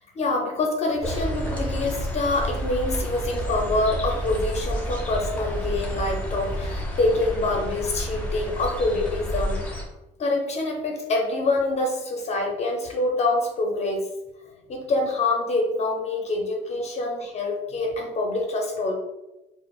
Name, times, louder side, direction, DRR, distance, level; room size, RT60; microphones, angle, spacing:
voice 1, 0.2-9.6 10.2-14.1 14.7-18.9, left 2 dB, 40° left, 1 dB, 0.6 m, -26 dB
sound 1, 1.0-9.8, left 1 dB, 10° left, 0.7 m, -31 dB
sound 2, 1.2-6.8, right 2 dB, 25° right, 0.9 m, -34 dB
4.0 x 2.0 x 2.3 m, 0.99 s
cardioid pair, 110°, 17 cm